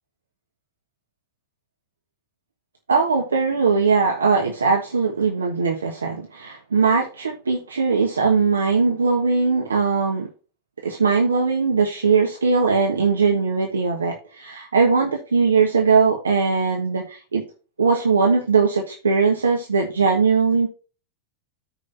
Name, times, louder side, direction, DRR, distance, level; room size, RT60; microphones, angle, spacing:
voice 1, 2.9-10.3 10.8-17.4 17.8-20.7, right 4 dB, 75° right, 1 dB, 1.3 m, -20 dB
14.5 x 5.1 x 2.6 m, 0.35 s
figure-of-eight pair, 90°, 0 cm